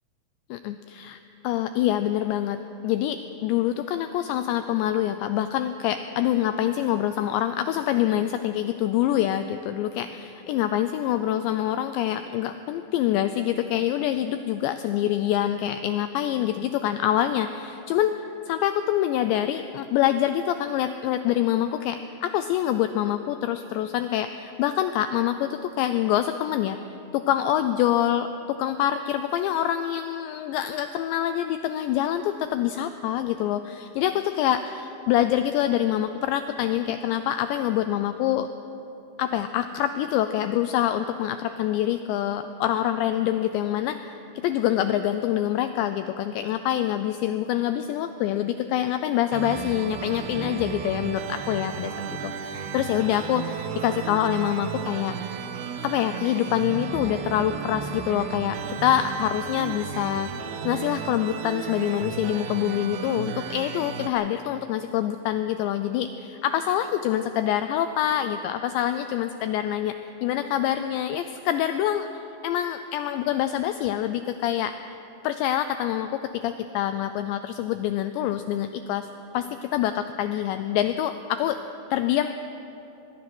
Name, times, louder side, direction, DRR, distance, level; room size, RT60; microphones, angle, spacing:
voice 1, 0.5-1.2 1.4-2.6 2.8-38.5 39.2-44.2 44.4-55.2 55.8-60.3 60.6-74.8 75.2-79.1 79.3-81.6 81.9-82.3, left 11 dB, 85° left, 9 dB, 2.5 m, -26 dB
sound 1, 49.3-64.1, right 8 dB, 85° right, 2.2 m, -34 dB
23.5 x 20.5 x 6.1 m, 2.8 s
omnidirectional pair, 5.8 m